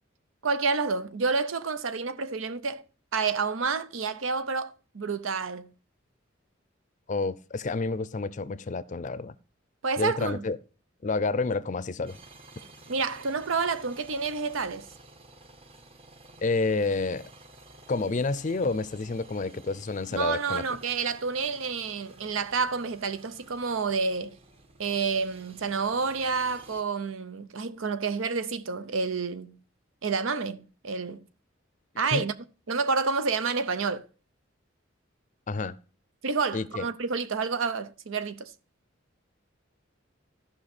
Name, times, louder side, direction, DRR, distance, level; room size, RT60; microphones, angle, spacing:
voice 1, 0.4-2.8 3.1-5.7 9.8-10.4 12.9-14.9 20.1-24.4 24.8-29.6 30.0-31.2 32.0-32.3 32.7-34.0 36.2-38.5, right 4 dB, 85° right, 0.7 m, -29 dB
voice 2, 7.1-9.3 10.0-10.6 11.0-12.2 16.4-17.3 17.9-20.6 32.1-32.2 35.5-35.8 36.5-36.9, left 3 dB, 40° left, 0.5 m, -29 dB
sound 1, 12.1-26.8, right 2 dB, 30° right, 0.9 m, -52 dB
14.0 x 5.6 x 4.3 m
head